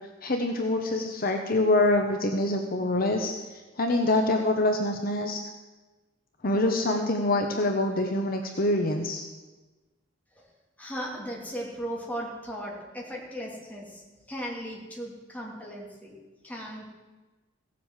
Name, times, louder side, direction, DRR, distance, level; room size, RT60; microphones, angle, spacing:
voice 1, 0.2-5.4 6.4-9.2, left 2 dB, 50° left, 4 dB, 1.0 m, -25 dB
voice 2, 10.8-14.0 14.3-16.2 16.4-16.9, equal, 10° left, -2 dB, 2.7 m, -37 dB
16.5 x 7.7 x 7.3 m, 1.2 s
head